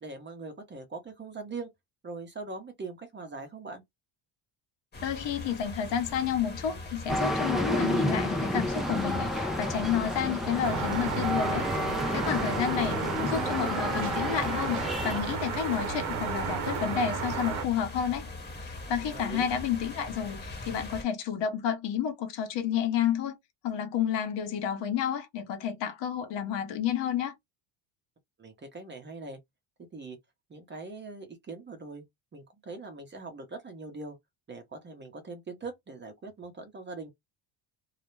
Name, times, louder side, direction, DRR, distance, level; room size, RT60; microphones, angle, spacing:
voice 1, 0.0-1.7 2.0-3.8 12.4-13.0 19.1-19.5 28.4-29.4 29.9-30.2 30.5-32.0 32.3-34.2 34.5-37.1, right 3 dB, 25° right, 0.7 m, -41 dB
sound 1, 4.9-21.0, left 2 dB, 20° left, 1.0 m, -42 dB
voice 2, 5.0-18.3 18.6-23.4 23.6-27.3, left 8 dB, 60° left, 0.8 m, -30 dB
sound 2, 7.1-15.2, left 1 dB, ahead, 0.3 m, -30 dB
sound 3, 10.6-17.6, right 6 dB, 80° right, 0.8 m, -33 dB
2.3 x 2.0 x 3.0 m
cardioid pair, 120°, 47 cm